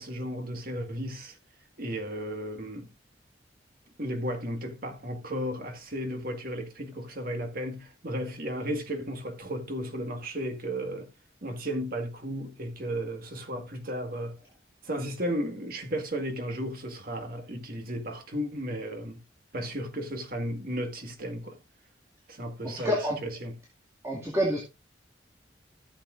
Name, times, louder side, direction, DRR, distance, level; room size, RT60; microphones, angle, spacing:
voice 1, 0.0-1.4 1.8-2.9 4.0-11.1 11.4-14.4 14.8-19.2 19.5-21.6 22.3-23.6, equal, 50° right, 1.9 m, -34 dB
voice 2, 22.6-23.2 24.0-24.6, equal, 15° right, 2.2 m, -28 dB
15.0 x 7.4 x 2.6 m
head